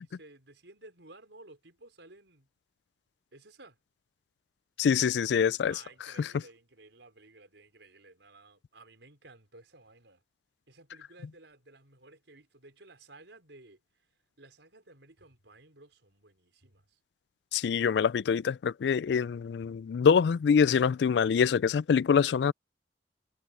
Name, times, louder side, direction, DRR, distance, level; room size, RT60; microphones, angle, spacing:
voice 1, 0.0-2.5 3.3-3.8 5.6-10.2 10.7-13.8 14.4-17.0, right 2 dB, 80° right, 5.2 m, -55 dB
voice 2, 4.8-5.7 6.2-6.3 17.5-22.5, left 6 dB, 65° left, 0.3 m, -25 dB
head